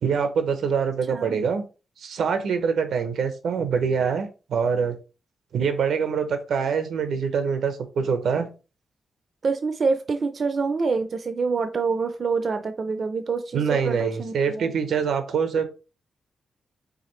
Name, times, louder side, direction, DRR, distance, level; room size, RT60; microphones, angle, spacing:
voice 1, 0.0-1.6 2.0-5.0 5.5-8.5 13.5-15.7, right 6 dB, 90° right, 9 dB, 0.7 m, -24 dB
voice 2, 9.4-14.7, right 4 dB, 40° right, 8 dB, 0.4 m, -26 dB
4.9 x 3.3 x 3.1 m, 0.32 s
wide cardioid pair, 155°, 0 cm